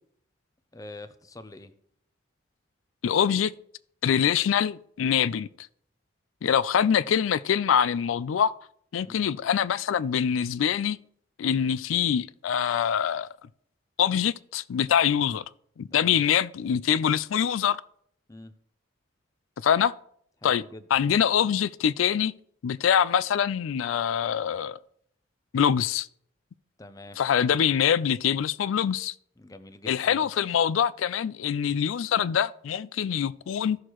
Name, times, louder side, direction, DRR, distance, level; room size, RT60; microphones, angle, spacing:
voice 1, 0.7-1.7 9.0-9.3 15.9-16.2 18.3-18.5 20.4-20.9 26.8-27.2 29.4-30.3, left 2 dB, 15° left, 0.5 m, -45 dB
voice 2, 3.0-3.5 4.0-5.5 6.4-8.5 8.9-11.0 11.4-13.3 14.0-15.4 15.8-17.8 19.6-19.9 20.4-20.6 20.9-22.3 22.6-24.8 25.5-26.1 27.2-29.1 29.9-33.8, left 8 dB, 85° left, 0.4 m, -24 dB
15.0 x 6.3 x 3.0 m
head